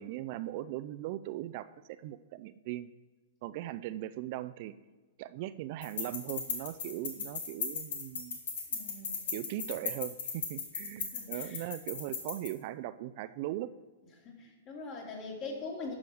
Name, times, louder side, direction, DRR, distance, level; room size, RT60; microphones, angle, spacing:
voice 1, 0.0-2.9 3.4-4.7 5.2-8.4 9.3-13.7, right 14 dB, 50° right, 13 dB, 0.4 m, -39 dB
sound 1, 5.8-12.5, left 5 dB, 65° left, 1.8 m, -37 dB
voice 2, 8.7-9.4 11.1-11.6 14.2-15.9, left 3 dB, 40° left, -1 dB, 3.0 m, -42 dB
11.0 x 6.3 x 4.8 m, 1.3 s
hypercardioid pair, 115°, 0 cm